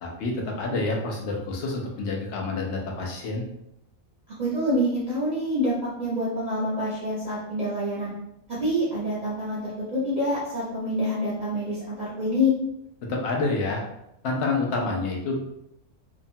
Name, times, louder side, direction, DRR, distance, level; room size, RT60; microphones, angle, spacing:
voice 1, 0.0-3.5 13.0-13.8 14.2-15.4, left 3 dB, 60° left, 0 dB, 0.8 m, -28 dB
voice 2, 4.4-8.1 8.5-12.5, left 1 dB, 40° right, -9 dB, 0.7 m, -26 dB
2.8 x 2.1 x 2.7 m, 0.81 s
omnidirectional pair, 1.4 m